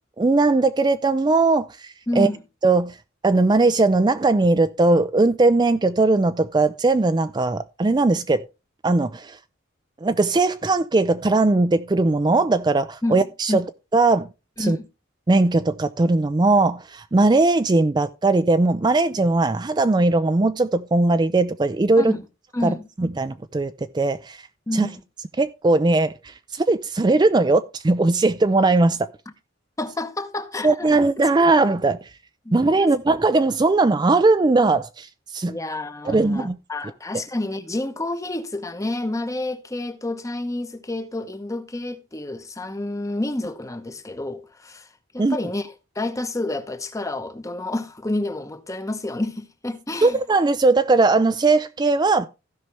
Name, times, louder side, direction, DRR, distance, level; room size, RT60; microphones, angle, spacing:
voice 1, 0.2-2.3 2.6-3.0 3.2-8.4 8.8-9.4 10.0-13.6 13.9-14.3 14.6-14.8 15.3-22.1 22.6-24.4 24.7-24.9 25.4-29.1 30.6-32.0 32.5-35.1 35.3-35.6 36.0-36.6 45.2-45.4 50.0-52.3, right 3 dB, 20° right, 0.4 m, -19 dB
voice 2, 2.1-2.4 13.0-13.2 13.5-13.6 14.6-14.9 22.0-22.3 22.5-22.8 24.7-25.0 29.8-31.3 32.4-32.9 35.5-44.9 45.1-50.2, left 2 dB, 15° left, 0.9 m, -29 dB
15.5 x 5.6 x 3.3 m
head